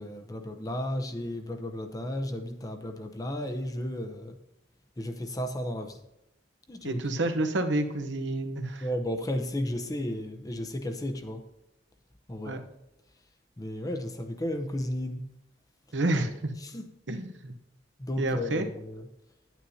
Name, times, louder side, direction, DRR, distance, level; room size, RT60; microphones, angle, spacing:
voice 1, 0.0-4.4 5.0-6.0 6.7-7.2 8.8-11.4 12.3-12.6 13.6-15.3 16.6-16.9 18.0-19.1, left 1 dB, 20° left, 0.7 m, -34 dB
voice 2, 6.8-8.9 12.4-12.6 15.9-16.5 17.1-17.5 18.2-18.7, right 2 dB, 80° right, 0.9 m, -29 dB
9.7 x 9.1 x 2.8 m
head